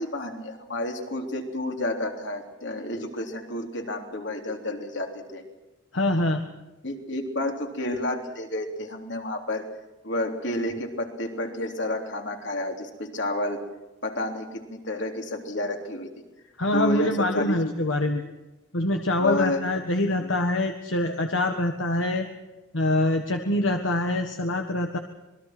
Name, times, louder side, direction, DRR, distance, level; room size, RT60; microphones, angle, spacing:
voice 1, 0.0-5.4 6.8-9.6 10.0-13.6 14.0-16.1 16.7-17.7 19.2-19.6 20.2-20.3, left 1 dB, 65° left, 3 dB, 3.5 m, -30 dB
voice 2, 5.9-6.4 16.6-18.2 18.7-22.3 22.7-25.0, left 1 dB, 80° left, 5 dB, 1.6 m, -25 dB
27.0 x 21.0 x 6.1 m, 1.1 s
head